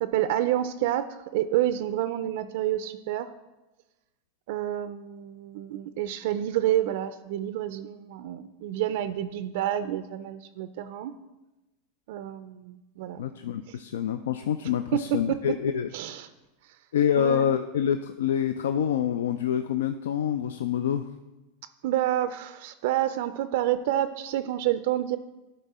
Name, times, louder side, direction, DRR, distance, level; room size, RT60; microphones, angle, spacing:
voice 1, 0.0-3.3 4.5-11.1 12.1-13.2 15.9-16.3 17.2-17.4 21.8-25.2, right 12 dB, 65° right, 11 dB, 0.4 m, -28 dB
voice 2, 13.2-15.9 16.9-21.1, left 9 dB, 90° left, 9 dB, 0.3 m, -26 dB
11.0 x 4.1 x 4.2 m, 1.1 s
supercardioid pair, 135°, 0 cm